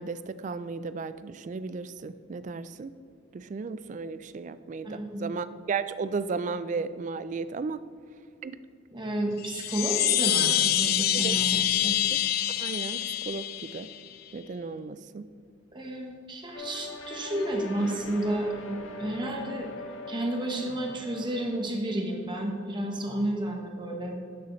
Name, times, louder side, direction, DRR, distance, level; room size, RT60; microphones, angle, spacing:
voice 1, 0.0-2.9 3.3-7.8 8.4-8.6 11.1-11.4 12.1-12.2 12.6-13.9 14.3-15.2, right 4 dB, 40° right, 14 dB, 0.3 m, -34 dB
voice 2, 4.8-5.3 8.9-12.0 15.7-19.7 20.1-24.2, right 1 dB, 25° right, 1 dB, 1.1 m, -31 dB
Chime, 9.4-14.1, left 12 dB, 50° left, 0.4 m, -26 dB
sound 1, 16.5-21.7, left 2 dB, 85° left, 0.9 m, -41 dB
11.5 x 6.8 x 3.1 m, 2.3 s
head